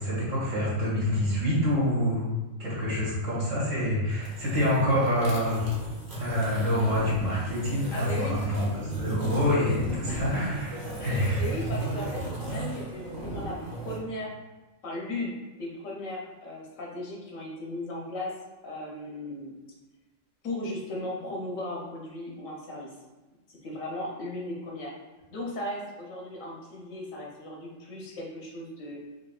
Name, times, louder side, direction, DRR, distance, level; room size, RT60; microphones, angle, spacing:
voice 1, 0.0-2.2 2.6-5.6 6.2-10.7 11.0-11.4, left 1 dB, 75° right, -7 dB, 2.1 m, -26 dB
sound 1, 4.1-14.0, right 1 dB, 20° right, 0.8 m, -35 dB
voice 2, 7.9-8.7 10.1-10.6 11.0-14.3 14.8-18.3 18.6-19.5 20.4-22.9 23.5-24.9 25.3-29.0, left 1 dB, 80° left, -2 dB, 1.3 m, -37 dB
5.9 x 2.4 x 2.4 m, 1.2 s
omnidirectional pair, 1.3 m